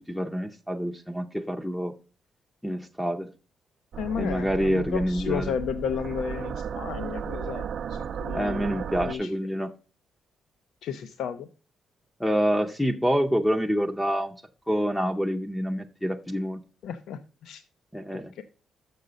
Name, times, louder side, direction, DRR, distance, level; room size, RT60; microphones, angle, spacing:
voice 1, 0.1-1.9 2.6-3.3 4.2-5.5 8.3-9.7 12.2-14.3 14.7-16.6 17.9-18.4, equal, 5° left, 4 dB, 0.5 m, -27 dB
sound 1, 3.9-9.2, right 7 dB, 60° right, 0.4 m, -35 dB
voice 2, 4.0-9.3 10.8-11.5 16.8-17.6 18.3-18.4, left 8 dB, 85° left, 10 dB, 0.5 m, -33 dB
6.8 x 6.3 x 5.0 m, 0.37 s
cardioid pair, 140°, 0 cm